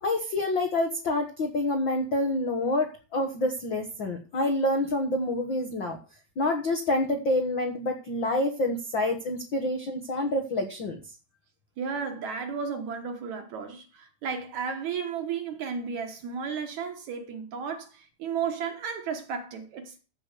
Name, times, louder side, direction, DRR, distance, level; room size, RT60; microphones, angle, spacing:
voice 1, 0.0-6.0 6.4-11.0, left 1 dB, 75° left, 1.1 m, -27 dB
voice 2, 11.8-20.0, right 6 dB, 60° right, 2.2 m, -33 dB
14.0 x 4.7 x 8.0 m
omnidirectional pair, 4.4 m